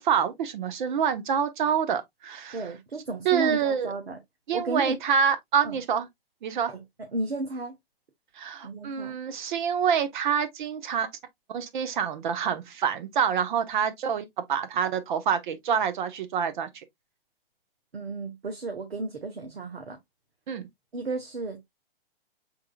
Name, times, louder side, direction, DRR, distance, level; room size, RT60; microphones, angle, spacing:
voice 1, 0.0-2.6 3.2-3.9 4.5-6.1 6.4-6.7 8.4-11.1 11.5-16.7 20.5-20.7, right 7 dB, 50° right, 1.0 m, -26 dB
voice 2, 2.5-4.2 4.5-5.0 5.6-5.8 6.7-6.8 7.1-7.8 8.6-9.2 17.9-20.0 20.9-21.6, right 2 dB, 85° right, 1.2 m, -33 dB
5.9 x 3.8 x 2.2 m
hypercardioid pair, 130°, 30 cm